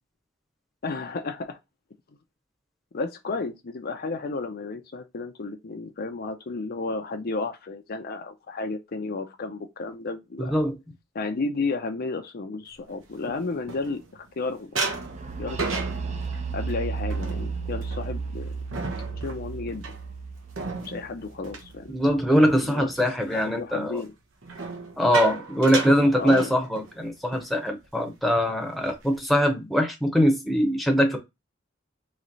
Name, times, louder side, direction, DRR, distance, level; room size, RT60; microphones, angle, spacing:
voice 1, 0.8-1.6 2.9-10.5 11.1-14.9 15.4-15.9 16.5-18.6 19.2-19.9 20.8-21.9 22.6-22.9 23.3-24.1 26.1-26.5, left 3 dB, 50° left, 0.5 m, -32 dB
voice 2, 10.4-10.7 21.9-24.0 25.0-31.2, equal, ahead, 0.9 m, -22 dB
sound 1, 12.9-14.3 14.7-22.6 22.9-23.3 24.4-27.0 27.3-27.5 27.8-28.1 28.6-29.3, right 4 dB, 75° right, 1.0 m, -35 dB
sound 2, 14.9-22.6, right 5 dB, 35° right, 0.6 m, -34 dB
3.2 x 3.1 x 3.9 m
head